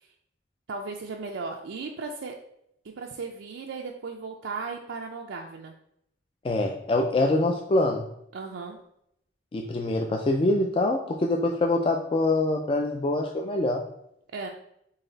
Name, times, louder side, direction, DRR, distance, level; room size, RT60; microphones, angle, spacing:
voice 1, 0.7-2.4 2.8-5.7 8.3-8.8 14.3-14.5, right 4 dB, 90° right, 1 dB, 0.4 m, -36 dB
voice 2, 6.4-8.0 9.5-13.8, left 2 dB, 30° left, 2 dB, 0.3 m, -24 dB
4.0 x 3.3 x 3.9 m, 0.76 s
head